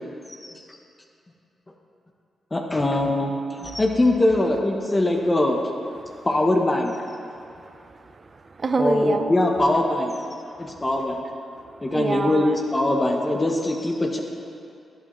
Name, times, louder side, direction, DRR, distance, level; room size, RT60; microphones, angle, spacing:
voice 1, 2.5-5.6 6.2-7.0 8.8-10.2 10.6-11.2 11.8-14.2, left 1 dB, 20° left, 1 dB, 0.9 m, -22 dB
voice 2, 7.5-9.3 10.5-10.8 11.6-12.6, right 3 dB, 40° right, 8 dB, 0.6 m, -29 dB
11.5 x 9.9 x 3.1 m, 2.6 s
cardioid pair, 85°, 0 cm